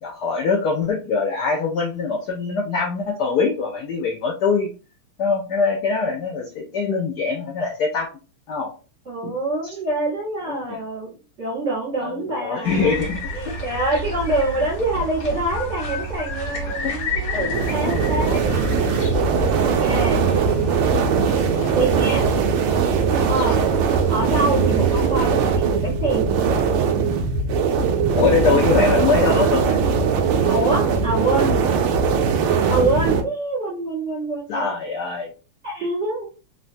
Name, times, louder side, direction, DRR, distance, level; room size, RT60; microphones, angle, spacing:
voice 1, 0.0-4.7 5.2-8.1 8.5-8.7 9.2-9.4 9.6-9.7 10.5-10.8 12.0-13.6 16.8-16.9 17.8-17.9 19.9-20.4 23.6-23.7 28.2-29.8 34.5-35.3, left 4 dB, 85° left, 1 dB, 0.9 m, -23 dB
voice 2, 9.0-11.1 11.4-13.0 13.3-18.9 19.4-20.2 21.7-22.3 23.3-23.6 24.1-26.2 30.4-31.5 32.5-34.7 35.6-36.3, right 2 dB, 40° right, -6 dB, 1.1 m, -25 dB
sound 1, 12.6-25.2, right 2 dB, 65° left, 1.4 m, -30 dB
sound 2, 17.5-33.2, right 6 dB, 80° right, 1.4 m, -20 dB
3.8 x 2.1 x 2.5 m, 0.34 s
omnidirectional pair, 2.4 m